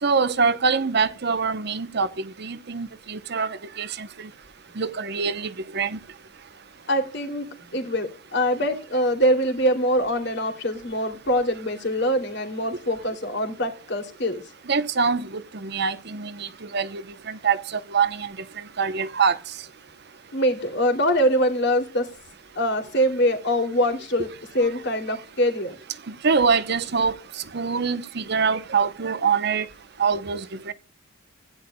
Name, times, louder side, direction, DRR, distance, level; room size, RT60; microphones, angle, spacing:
voice 1, 0.0-4.3 4.8-6.0 14.7-19.4 24.6-24.7 26.1-29.7 30.0-30.7, right 5 dB, 55° right, 0.8 m, -25 dB
voice 2, 6.9-7.5 7.7-14.4 20.3-22.1 22.6-24.3 24.5-25.8, equal, 55° left, 2.7 m, -23 dB
16.0 x 10.5 x 2.2 m
head